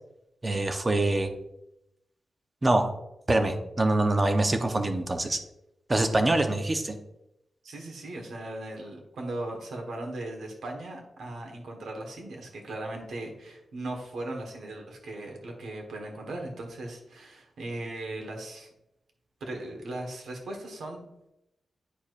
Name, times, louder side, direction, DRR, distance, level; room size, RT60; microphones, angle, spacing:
voice 1, 0.4-1.3 2.6-2.9 3.3-5.4 5.9-7.0, right 2 dB, 25° right, 6 dB, 0.7 m, -24 dB
voice 2, 7.6-18.7 19.4-21.1, right 2 dB, 80° right, 1 dB, 1.3 m, -38 dB
9.9 x 4.7 x 2.5 m, 0.86 s
wide cardioid pair, 125°, 0 cm